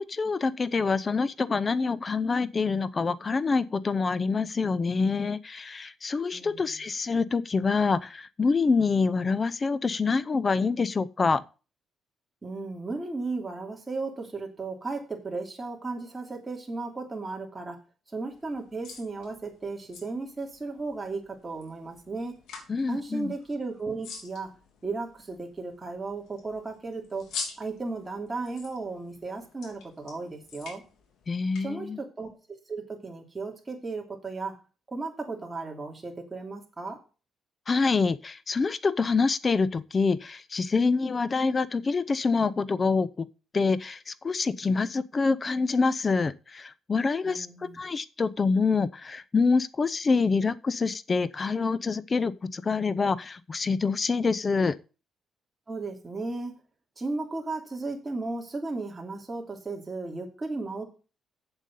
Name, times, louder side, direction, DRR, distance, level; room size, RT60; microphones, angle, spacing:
voice 1, 0.0-11.4 22.7-23.3 31.3-32.0 37.7-43.3 43.5-47.5 47.7-54.8, left 4 dB, 35° left, 0.7 m, -26 dB
voice 2, 6.3-6.8 12.4-17.8 18.1-22.4 22.9-24.5 24.8-27.3 27.6-30.8 31.6-32.4 32.7-34.6 34.9-37.0 47.2-47.8 55.7-56.6 57.0-60.9, right 3 dB, 25° right, 2.9 m, -35 dB
sound 1, 18.3-31.6, left 5 dB, 80° left, 3.1 m, -46 dB
8.1 x 7.5 x 5.5 m
cardioid pair, 90°, 0 cm